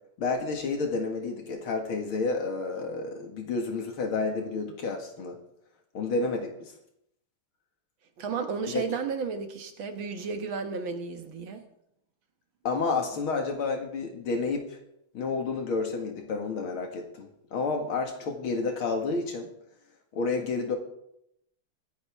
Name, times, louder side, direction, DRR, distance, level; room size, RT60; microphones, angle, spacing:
voice 1, 0.2-5.4 5.9-6.7 8.7-8.8 12.6-14.8 15.1-19.5 20.1-20.8, left 4 dB, 70° left, 3 dB, 2.7 m, -30 dB
voice 2, 8.2-11.6, right 5 dB, 65° right, 6 dB, 2.1 m, -33 dB
23.5 x 9.8 x 3.6 m, 0.78 s
omnidirectional pair, 2.4 m